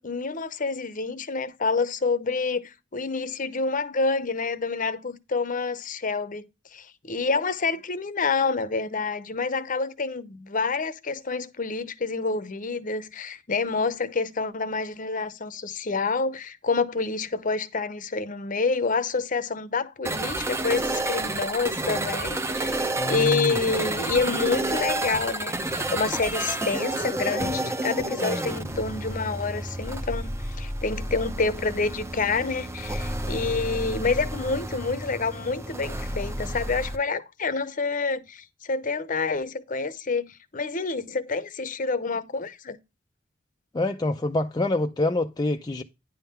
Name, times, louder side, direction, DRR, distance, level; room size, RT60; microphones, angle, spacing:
voice 1, 0.0-6.4 6.7-42.8, left 4 dB, 45° left, 0.8 m, -28 dB
sound 1, 20.0-37.0, right 2 dB, 15° right, 0.7 m, -30 dB
voice 2, 23.0-23.6 43.7-45.8, left 2 dB, 20° left, 0.5 m, -26 dB
10.0 x 3.7 x 5.6 m
head